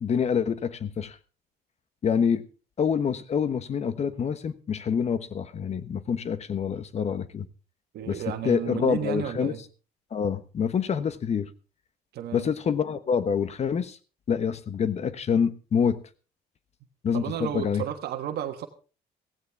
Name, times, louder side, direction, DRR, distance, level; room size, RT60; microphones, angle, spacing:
voice 1, 0.0-1.2 2.0-2.4 2.8-7.5 8.1-9.5 10.1-11.5 12.3-14.0 14.3-16.0 17.0-17.8, left 7 dB, 40° left, 14 dB, 1.2 m, -26 dB
voice 2, 7.9-9.6 12.1-12.5 17.1-18.7, right 10 dB, 70° right, 6 dB, 1.4 m, -32 dB
16.0 x 15.5 x 3.5 m, 0.35 s
cardioid pair, 110°, 17 cm